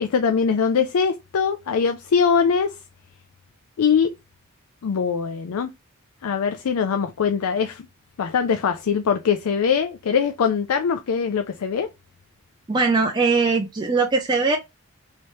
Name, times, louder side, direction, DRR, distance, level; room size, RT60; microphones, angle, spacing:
voice 1, 0.0-2.7 3.8-4.1 4.8-5.7 6.2-7.9 8.2-11.9, left 6 dB, 80° left, 0.4 m, -22 dB
voice 2, 12.7-14.6, right 4 dB, 20° right, 0.4 m, -20 dB
3.2 x 3.0 x 2.7 m
head